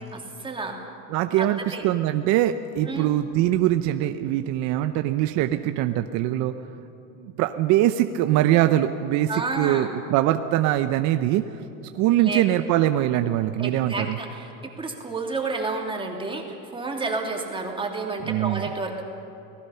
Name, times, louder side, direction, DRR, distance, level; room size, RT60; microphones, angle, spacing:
voice 1, 0.1-0.8 1.4-1.8 2.9-3.1 9.3-9.9 12.2-12.4 13.6-19.0, right 3 dB, 10° right, 1 dB, 2.8 m, -30 dB
voice 2, 1.1-6.6 7.2-11.6 11.9-14.2 18.2-18.7, right 13 dB, 45° right, 8 dB, 0.8 m, -22 dB
29.5 x 18.5 x 5.7 m, 2.9 s
supercardioid pair, 135°, 40 cm